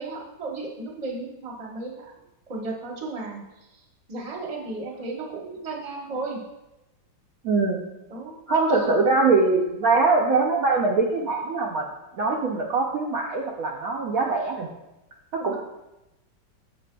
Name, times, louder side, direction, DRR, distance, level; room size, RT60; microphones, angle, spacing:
voice 1, 0.0-2.1 2.5-3.4 3.7-3.8 4.1-6.4 8.1-8.4 8.7-9.0 15.4-15.6, right 3 dB, 25° right, -1 dB, 0.8 m, -34 dB
voice 2, 7.4-7.8 8.5-11.9 12.2-14.7 15.3-15.6, right 3 dB, 65° right, -1 dB, 0.9 m, -22 dB
7.5 x 6.6 x 2.2 m, 0.96 s
omnidirectional pair, 2.0 m